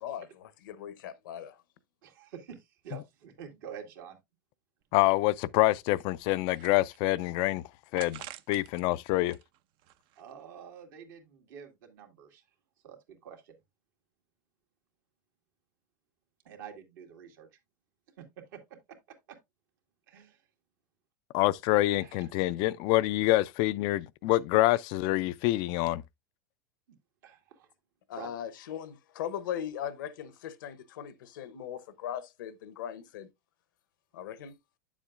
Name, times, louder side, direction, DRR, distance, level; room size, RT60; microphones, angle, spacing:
voice 1, 0.0-1.6 28.1-33.3 34.1-34.5, left 9 dB, 80° left, 0.9 m, -39 dB
voice 2, 2.0-4.2 10.2-12.4 12.8-13.6 16.4-17.5 18.2-19.0 19.3-19.4 20.1-20.4 21.8-22.3 27.2-27.7 28.1-28.3, right 8 dB, 70° right, 2.2 m, -48 dB
sound 1, 4.8-4.9 5.2-5.3 5.9-7.2 8.0-8.8 9.2-10.4, right 13 dB, 50° right, 0.6 m, -48 dB
voice 3, 4.9-7.6 7.9-9.4 21.3-26.0, left 17 dB, 50° left, 0.4 m, -26 dB
9.1 x 7.3 x 2.4 m
hypercardioid pair, 110°, 11 cm